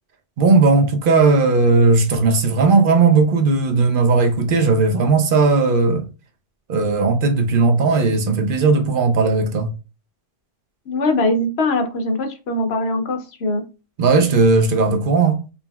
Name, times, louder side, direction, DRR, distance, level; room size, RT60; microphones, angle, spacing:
voice 1, 0.4-6.1 6.7-9.7 14.0-15.4, right 4 dB, 55° right, 0.8 m, -16 dB
voice 2, 10.9-13.6, left 2 dB, 65° left, 0.9 m, -21 dB
5.3 x 2.9 x 2.2 m
omnidirectional pair, 1.2 m